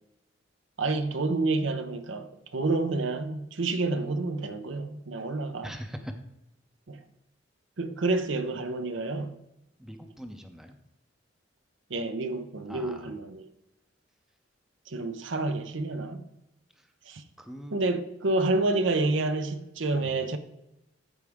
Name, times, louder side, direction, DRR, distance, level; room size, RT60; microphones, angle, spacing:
voice 1, 0.8-5.7 6.9-7.0 7.8-9.4 11.9-13.4 14.9-16.2 17.1-17.2 17.7-20.4, right 2 dB, 70° right, 0.8 m, -29 dB
voice 2, 5.6-6.1 9.8-10.8 12.7-13.1 16.7-16.9 17.4-17.8 19.9-20.2, equal, ahead, 0.6 m, -42 dB
13.5 x 4.6 x 3.6 m
head